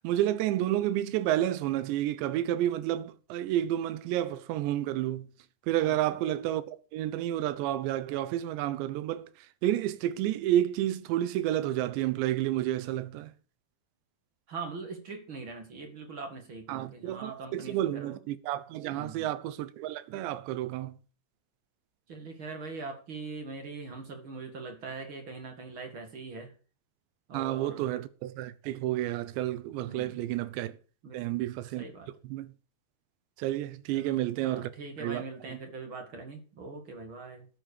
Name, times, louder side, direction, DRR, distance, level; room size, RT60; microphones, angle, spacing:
voice 1, 0.0-5.3 5.7-13.3 16.7-21.0 27.3-30.8 31.1-31.9 32.2-32.5 33.4-34.7 35.0-35.6, right 13 dB, 85° right, 3.1 m, -30 dB
voice 2, 14.5-18.1 18.9-19.3 22.1-26.5 27.3-27.9 29.9-30.2 31.0-31.4 31.8-32.1 33.9-34.2 34.4-37.5, right 4 dB, 40° right, 2.0 m, -42 dB
12.5 x 7.9 x 6.6 m
omnidirectional pair, 5.0 m